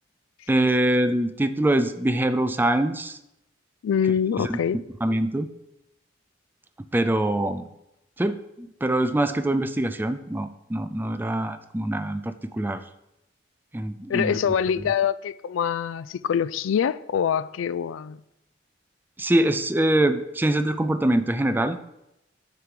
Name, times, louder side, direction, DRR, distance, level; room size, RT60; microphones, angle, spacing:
voice 1, 0.5-3.2 4.4-4.6 5.0-5.5 6.8-7.7 8.2-12.8 13.7-14.4 19.2-21.8, right 1 dB, 10° right, 0.4 m, -24 dB
voice 2, 3.8-4.8 14.1-18.2, left 8 dB, 85° left, 0.3 m, -24 dB
6.7 x 4.7 x 6.7 m
head